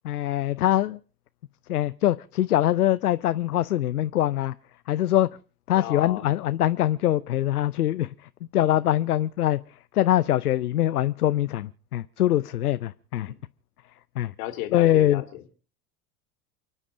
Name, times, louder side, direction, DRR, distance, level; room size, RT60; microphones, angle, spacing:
voice 1, 0.0-1.0 1.7-4.5 4.9-5.3 5.7-8.1 8.5-9.6 9.9-13.3 14.2-14.3 14.7-15.2, left 13 dB, 80° left, 0.7 m, -23 dB
voice 2, 5.8-6.3 13.3-13.4 14.4-15.5, left 14 dB, 60° left, 2.7 m, -34 dB
29.0 x 9.8 x 5.0 m
figure-of-eight pair, 75°, 45 cm